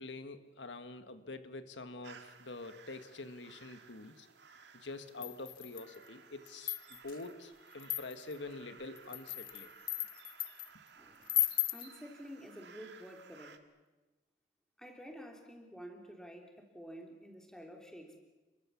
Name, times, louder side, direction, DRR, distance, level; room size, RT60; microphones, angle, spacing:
voice 1, 0.0-4.3 4.7-9.7, left 2 dB, 85° left, 9 dB, 1.6 m, -46 dB
sound 1, 2.0-13.6, right 6 dB, 75° right, 2.0 m, -58 dB
sound 2, 5.2-6.0 6.5-7.2 7.8-8.4 9.0-10.7 11.3-11.9, left 14 dB, 50° left, 0.8 m, -35 dB
voice 2, 11.0-13.6 14.8-18.2, equal, 5° left, 2 dB, 3.4 m, -50 dB
29.0 x 22.5 x 7.2 m, 1.2 s
head